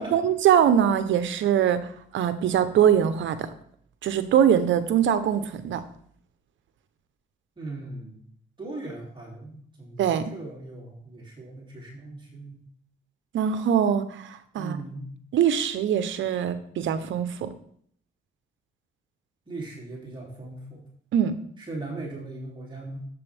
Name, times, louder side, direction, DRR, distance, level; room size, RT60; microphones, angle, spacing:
voice 1, 0.0-3.5 4.0-5.8 10.0-10.3 13.3-14.8 15.3-17.5 21.1-21.3, right 9 dB, 75° right, 11 dB, 1.0 m, -22 dB
voice 2, 7.6-8.3 8.6-10.0 10.3-12.6 14.5-15.2 19.5-20.8 21.6-23.1, right 2 dB, 25° right, -3 dB, 3.2 m, -38 dB
10.5 x 7.8 x 3.6 m, 0.63 s
cardioid pair, 90°, 20 cm